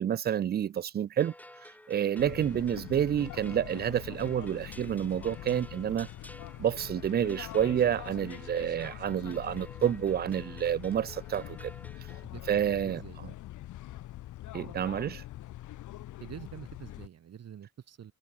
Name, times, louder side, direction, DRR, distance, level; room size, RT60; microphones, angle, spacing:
voice 1, 0.0-1.3 1.9-6.1 6.6-11.7 12.5-13.3 14.5-15.2, right 9 dB, 35° right, 0.4 m, -29 dB
sound 1, 1.2-12.3, left 1 dB, 5° left, 2.5 m, -52 dB
sound 2, 2.2-17.1, left 14 dB, 80° left, 1.6 m, -44 dB
voice 2, 12.2-13.2 16.2-18.1, right 9 dB, 55° right, 2.4 m, -46 dB
cardioid pair, 90°, 30 cm